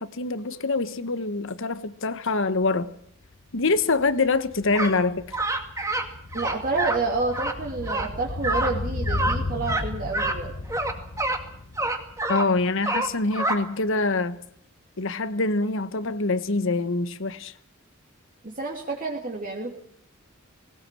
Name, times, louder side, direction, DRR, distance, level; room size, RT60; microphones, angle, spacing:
voice 1, 0.0-2.9 3.5-5.2 12.3-14.4 15.0-17.5, left 3 dB, 65° left, 1.2 m, -25 dB
sound 1, 2.6-2.7 3.0-13.3 13.6-13.7, left 2 dB, 50° left, 1.0 m, -35 dB
sound 2, 4.7-5.0 5.3-6.1 6.3-7.0 7.3-7.6 7.9-8.1 8.4-8.7 9.1-9.4 9.6-9.8 10.1-10.4 10.7-11.4 11.8-12.5 12.8-13.6, right 2 dB, 15° right, 2.3 m, -26 dB
voice 2, 6.3-10.5 18.4-19.7, right 3 dB, 40° right, 2.8 m, -29 dB
19.5 x 18.5 x 7.7 m
head